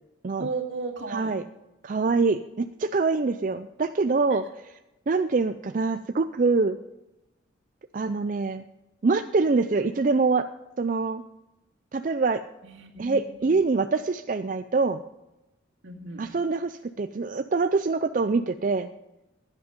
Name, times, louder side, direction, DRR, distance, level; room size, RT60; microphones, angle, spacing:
voice 1, 0.4-1.3 4.3-4.4 12.6-13.6 15.8-16.3, right 4 dB, 70° right, 1 dB, 2.2 m, -35 dB
voice 2, 1.1-1.4 1.8-4.8 5.1-6.8 7.9-8.6 9.0-10.5 10.8-11.2 11.9-12.4 13.0-15.0 16.2-18.9, right 4 dB, 40° right, 9 dB, 0.4 m, -25 dB
16.0 x 10.5 x 5.2 m, 0.97 s
head